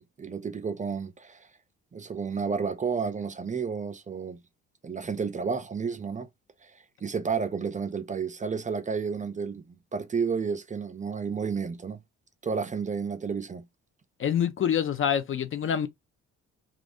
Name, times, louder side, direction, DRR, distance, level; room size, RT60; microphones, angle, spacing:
voice 1, 0.0-1.5 1.9-4.4 4.8-6.3 6.6-6.7 7.0-12.0 12.4-13.6, right 5 dB, 25° right, 0.5 m, -31 dB
voice 2, 14.2-15.9, left 9 dB, 45° left, 0.5 m, -26 dB
2.5 x 2.4 x 3.3 m
cardioid pair, 90°, 30 cm